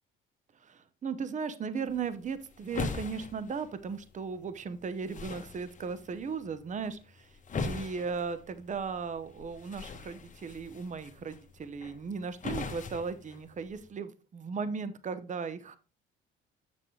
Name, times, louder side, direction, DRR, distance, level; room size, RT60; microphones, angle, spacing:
voice 1, 0.6-7.3 7.5-15.8, right 5 dB, 35° right, 13 dB, 0.8 m, -37 dB
sound 1, 1.9-13.9, left 4 dB, 40° left, 1.2 m, -42 dB
7.2 x 6.8 x 3.1 m, 0.33 s
cardioid pair, 90°, 21 cm